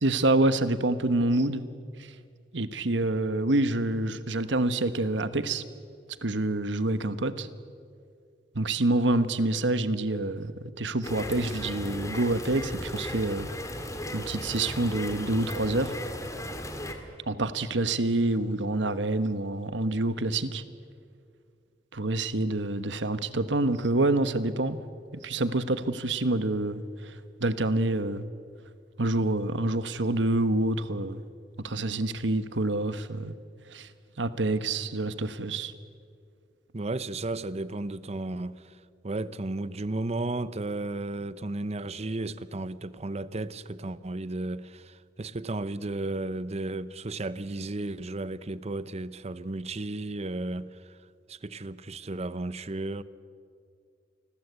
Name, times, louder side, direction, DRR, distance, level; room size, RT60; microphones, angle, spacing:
voice 1, 0.0-1.6 2.0-2.1 2.5-5.6 6.2-7.5 8.5-13.5 14.1-15.9 17.3-20.6 21.9-24.8 25.1-28.2 29.0-31.2 31.6-33.4 33.7-33.9 34.2-35.7, right 2 dB, 80° right, 1.3 m, -27 dB
sound 1, 11.0-16.9, left 1 dB, 20° left, 2.4 m, -36 dB
voice 2, 36.7-38.8 39.0-51.0 51.3-53.0, right 2 dB, 35° right, 0.8 m, -34 dB
28.5 x 21.0 x 8.2 m
head